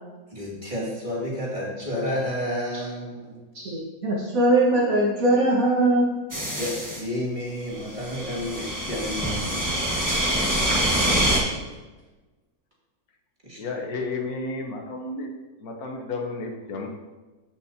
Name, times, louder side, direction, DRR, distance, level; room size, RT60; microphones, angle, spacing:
voice 1, 0.3-3.3 6.6-10.0 13.4-13.6, left 1 dB, 30° right, -6 dB, 2.6 m, -31 dB
voice 2, 4.0-6.2, right 1 dB, 65° right, -5 dB, 1.8 m, -20 dB
sound 1, 6.3-7.0 7.8-11.4, right 1 dB, 15° right, 1.3 m, -25 dB
voice 3, 13.6-15.3 15.6-16.9, left 3 dB, 75° left, 1 dB, 1.5 m, -32 dB
14.0 x 5.8 x 2.8 m, 1.2 s
omnidirectional pair, 1.6 m